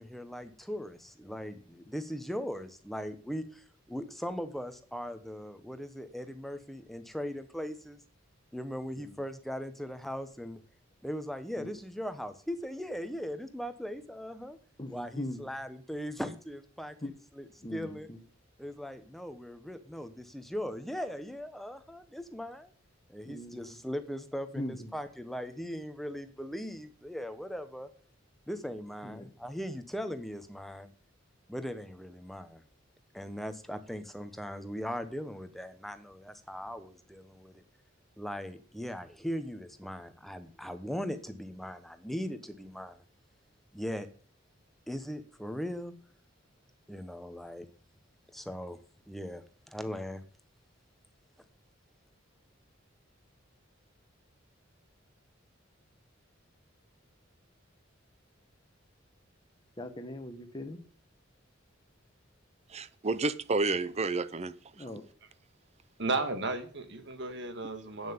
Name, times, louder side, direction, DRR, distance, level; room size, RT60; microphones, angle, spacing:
voice 1, 0.0-8.0 8.5-10.6 11.0-14.6 14.9-18.1 18.6-22.7 23.1-27.9 28.5-30.9 31.5-32.6 33.1-37.6 38.2-43.0 43.7-44.1 44.9-45.9 46.9-47.7 48.3-48.8 49.1-50.2, equal, ahead, 0.9 m, -39 dB
voice 2, 14.8-15.5 17.0-17.1 17.6-18.2 23.3-23.6 24.5-24.9 29.0-29.3 59.8-60.8 64.7-65.1, left 1 dB, 25° left, 1.1 m, -40 dB
voice 3, 62.7-64.9, right 3 dB, 35° right, 0.6 m, -31 dB
voice 4, 66.0-68.1, right 3 dB, 65° right, 1.6 m, -34 dB
8.8 x 7.3 x 7.2 m
head